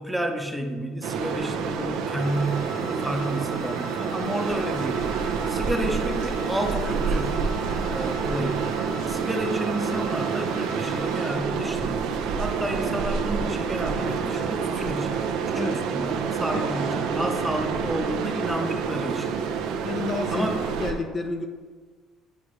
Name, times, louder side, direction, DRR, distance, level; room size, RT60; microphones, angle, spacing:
voice 1, 0.0-5.1 5.5-7.5 7.9-8.8 9.1-12.1 12.4-15.6 15.9-19.4 20.3-20.5, right 1 dB, 5° right, 3 dB, 0.8 m, -30 dB
sound 1, 1.0-20.9, right 6 dB, 90° right, 0.7 m, -28 dB
sound 2, 2.2-11.2, left 4 dB, 80° left, 1.6 m, -43 dB
voice 2, 15.5-15.9 16.5-16.6 19.8-20.5 20.8-21.4, left 3 dB, 40° left, 5 dB, 0.6 m, -30 dB
9.2 x 4.8 x 3.2 m, 1.5 s
cardioid pair, 115°, 0 cm